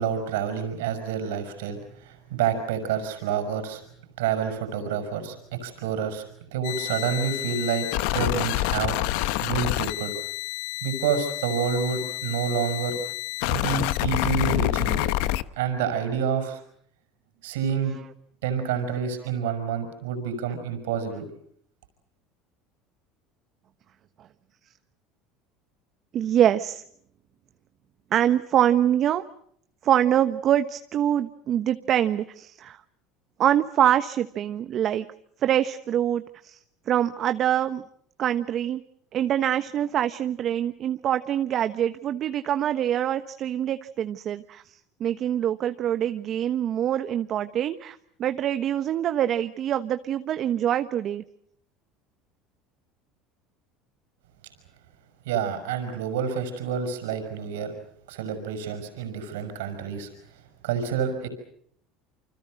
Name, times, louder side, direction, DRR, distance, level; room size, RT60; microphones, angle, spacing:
voice 1, 0.0-3.8 4.2-9.0 9.4-10.1 10.8-13.0 13.5-15.0 15.6-16.6 17.4-17.9 18.4-21.3 55.3-57.7 58.1-60.1 60.6-61.3, right 7 dB, 85° right, 9 dB, 5.8 m, -28 dB
sound 1, 6.6-15.4, left 16 dB, 75° left, 1.0 m, -28 dB
voice 2, 26.1-26.8 28.1-29.2 29.8-32.8 33.4-35.0 35.4-36.6 36.9-37.8 38.2-38.8 39.1-44.6 45.0-51.2, right 10 dB, 50° right, 10 dB, 1.2 m, -24 dB
28.5 x 26.0 x 6.5 m, 0.66 s
supercardioid pair, 90°, 0 cm